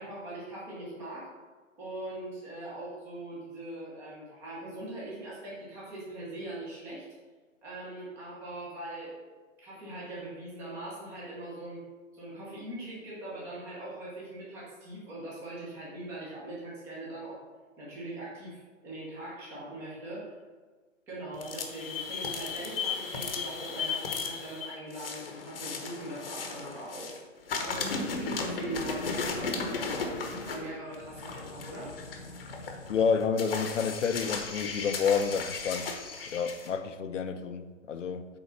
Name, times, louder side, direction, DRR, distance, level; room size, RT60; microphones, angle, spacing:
voice 1, 0.0-1.4 1.8-7.1 7.6-9.2 9.6-11.8 12.1-17.4 17.8-20.3 21.1-27.1 27.6-31.9, right 1 dB, 5° right, -7 dB, 1.0 m, -41 dB
sound 1, 21.3-27.2 27.5-36.7, left 4 dB, 45° left, 1.1 m, -36 dB
voice 2, 32.9-35.9 36.3-38.3, left 6 dB, 65° left, 9 dB, 0.8 m, -29 dB
8.6 x 3.9 x 5.7 m, 1.4 s
hypercardioid pair, 170°, 40 cm